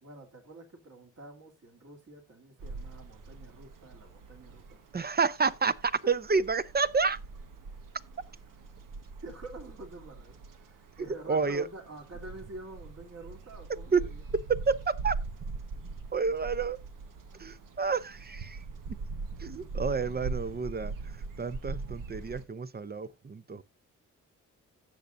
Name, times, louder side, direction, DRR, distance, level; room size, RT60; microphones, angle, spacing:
voice 1, 0.0-4.8 9.2-14.2, right 2 dB, 50° right, 3.1 m, -47 dB
sound 1, 2.6-22.4, right 3 dB, 75° right, 1.3 m, -42 dB
voice 2, 4.9-7.2 11.0-11.7 13.9-15.2 16.1-16.8 17.4-18.7 19.4-23.6, right 5 dB, 30° right, 0.8 m, -30 dB
17.5 x 6.8 x 2.6 m
cardioid pair, 80°, 33 cm